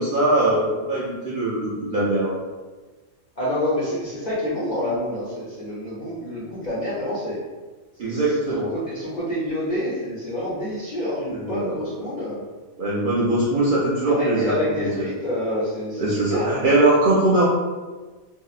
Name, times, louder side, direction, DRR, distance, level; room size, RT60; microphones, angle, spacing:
voice 1, 0.0-2.3 8.0-8.7 11.3-11.8 12.8-14.5 14.8-15.0 16.0-17.4, right 2 dB, 60° right, -8 dB, 0.5 m, -21 dB
voice 2, 3.4-7.4 8.0-12.4 14.1-16.7, left 1 dB, 55° left, -9 dB, 0.5 m, -28 dB
2.7 x 2.0 x 2.3 m, 1.3 s
omnidirectional pair, 1.3 m